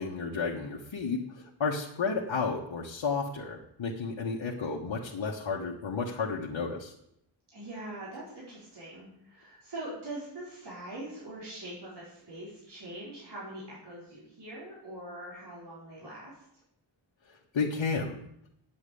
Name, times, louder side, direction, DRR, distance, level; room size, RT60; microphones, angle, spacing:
voice 1, 0.0-6.9 17.5-18.2, left 4 dB, 80° left, -3 dB, 1.4 m, -32 dB
voice 2, 7.5-16.4, right 1 dB, 60° right, -7 dB, 4.5 m, -43 dB
9.0 x 7.3 x 8.4 m, 0.77 s
wide cardioid pair, 110°, 46 cm